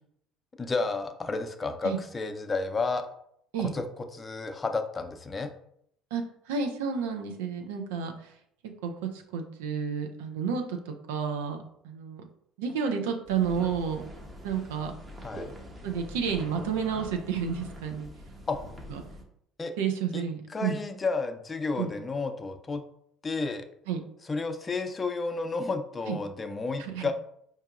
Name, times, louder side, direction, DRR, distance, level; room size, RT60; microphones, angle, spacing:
voice 1, 0.6-3.1 3.6-3.9 4.1-5.5 15.2-15.5 18.5-18.6 19.6-19.7 20.1-22.8 23.2-23.7 24.3-27.1, left 3 dB, 30° left, 7 dB, 0.5 m, -31 dB
voice 2, 6.1-8.3 8.8-12.2 12.6-14.0 14.4-14.9 15.8-18.1 18.9-19.0 19.8-20.8 21.8-21.9 23.9-24.0 26.1-26.2 26.8-27.1, right 6 dB, 85° right, 4 dB, 0.5 m, -31 dB
sound 1, 13.3-19.2, equal, 25° right, 0.8 m, -44 dB
4.6 x 2.7 x 2.4 m, 0.70 s
hypercardioid pair, 70°, 0 cm